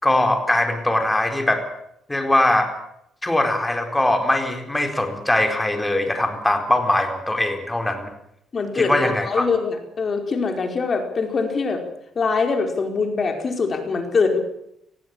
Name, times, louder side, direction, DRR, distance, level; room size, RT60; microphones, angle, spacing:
voice 1, 0.0-1.6 2.1-2.7 3.2-8.1 8.7-9.5, left 1 dB, 10° left, 5 dB, 4.3 m, -21 dB
voice 2, 8.5-11.8 12.1-14.4, left 4 dB, 40° left, 4 dB, 4.8 m, -23 dB
19.5 x 15.0 x 8.9 m, 0.77 s
cardioid pair, 90°, 0 cm